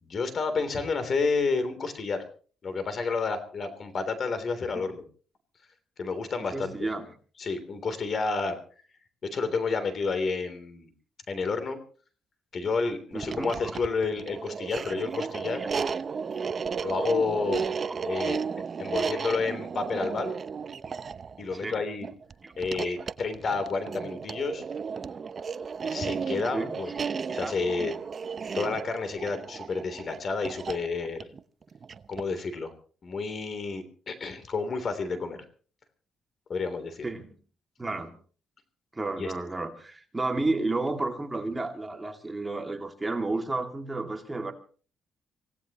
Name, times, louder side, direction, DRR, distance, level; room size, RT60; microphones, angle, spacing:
voice 1, 0.0-2.2 2.6-5.0 6.0-6.7 7.4-8.6 9.2-10.9 11.3-11.8 12.5-15.6 16.8-17.7 18.0-18.4 18.8-20.3 21.4-22.1 22.6-24.6 25.8-26.9 27.3-28.0 28.5-31.3 32.1-32.7 33.0-35.4 36.5-37.0 39.2-39.3, left 4 dB, 50° left, 10 dB, 3.3 m, -30 dB
voice 2, 6.5-7.1 13.1-13.7 14.8-15.0 15.5-15.7 18.0-18.4 21.5-21.8 22.4-22.5 22.9-23.0 26.5-26.8 27.3-27.5 37.0-37.3 37.8-38.1 38.9-44.5, right 2 dB, 15° right, 4 dB, 2.4 m, -32 dB
sound 1, 13.1-32.4, right 6 dB, 45° right, 0.7 m, -34 dB
26.0 x 17.0 x 3.0 m, 0.41 s
cardioid pair, 90°, 0 cm